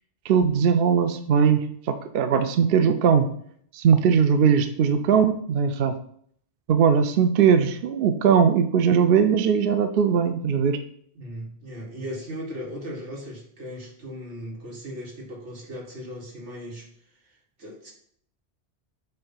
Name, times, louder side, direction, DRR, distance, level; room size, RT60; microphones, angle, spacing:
voice 1, 0.3-3.3 3.7-6.0 6.7-10.8, right 7 dB, 65° right, 9 dB, 0.7 m, -20 dB
voice 2, 11.2-16.9 17.6-17.9, equal, 90° right, -1 dB, 2.0 m, -37 dB
7.6 x 2.7 x 5.6 m, 0.64 s
omnidirectional pair, 1.2 m